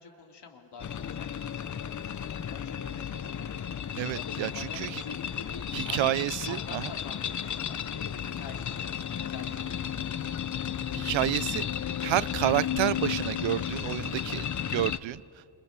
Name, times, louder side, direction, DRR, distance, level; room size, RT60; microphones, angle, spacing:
voice 1, 0.0-2.0 2.3-3.3 4.1-6.0 6.5-8.9 9.2-9.9, left 5 dB, 65° left, 2.6 m, -47 dB
sound 1, 0.8-15.0, left 9 dB, 40° left, 0.7 m, -33 dB
voice 2, 4.0-5.0 5.7-6.9 10.9-11.7 12.0-14.5 14.7-15.2, right 15 dB, 90° right, 0.6 m, -29 dB
29.0 x 27.5 x 5.9 m
wide cardioid pair, 155°, 44 cm